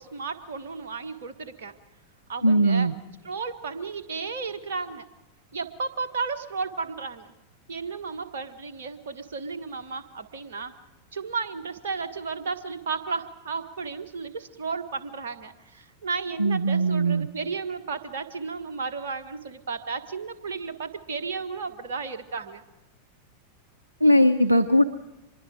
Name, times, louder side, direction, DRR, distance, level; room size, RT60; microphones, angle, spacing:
voice 1, 0.0-1.7 2.3-2.9 3.2-5.1 5.5-7.3 7.7-10.7 11.1-22.6, right 4 dB, 60° right, 9 dB, 1.4 m, -33 dB
voice 2, 2.4-2.9 16.4-17.3 24.0-24.8, equal, 85° right, 11 dB, 0.6 m, -19 dB
25.5 x 21.5 x 5.0 m, 1.0 s
figure-of-eight pair, 90°, 0 cm